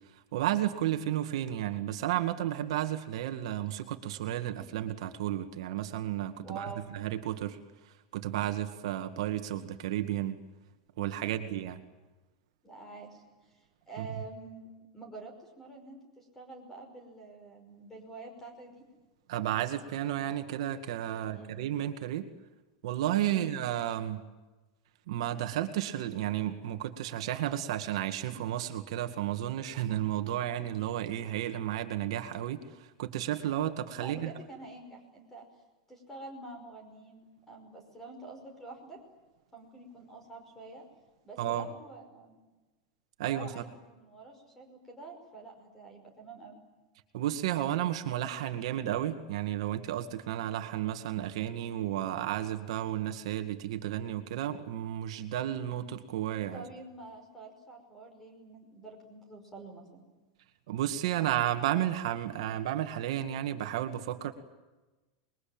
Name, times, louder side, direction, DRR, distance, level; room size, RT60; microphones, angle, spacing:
voice 1, 0.3-7.6 7.8-10.4 11.0-11.8 14.0-14.1 19.3-22.2 22.8-24.2 25.1-34.3 41.4-41.7 43.2-43.6 47.1-56.6 60.7-64.3, right 12 dB, 60° right, 7 dB, 2.1 m, -32 dB
voice 2, 6.4-6.9 11.1-11.5 12.6-18.8 21.1-21.6 23.3-23.5 34.0-35.4 35.9-39.0 39.5-40.8 41.2-42.4 43.2-46.6 56.5-60.0, right 3 dB, 10° left, 5 dB, 5.4 m, -47 dB
27.0 x 22.5 x 8.8 m, 1.1 s
supercardioid pair, 175°, 3 cm